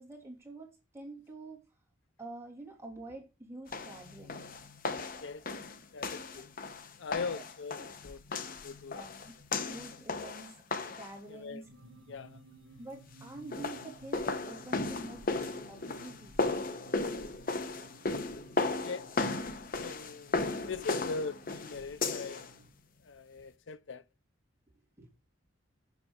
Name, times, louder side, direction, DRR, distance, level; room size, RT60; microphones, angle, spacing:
voice 1, 0.0-1.6 2.2-4.5 6.3-6.4 7.1-7.4 7.8-7.9 8.9-10.6 10.9-11.7 12.8-16.4 20.9-21.0 25.0-25.1, right 2 dB, 15° right, 3.1 m, -47 dB
sound 1, 3.7-11.2 13.3-22.5, left 3 dB, 45° left, 0.9 m, -35 dB
voice 2, 5.9-6.5 7.0-9.0 11.3-11.6 12.1-12.4 18.8-19.1 19.8-20.4 20.7-22.5 23.0-24.0, left 4 dB, 70° left, 0.5 m, -40 dB
sound 2, 11.6-22.7, right 2 dB, 85° right, 1.6 m, -57 dB
7.2 x 6.1 x 6.3 m
head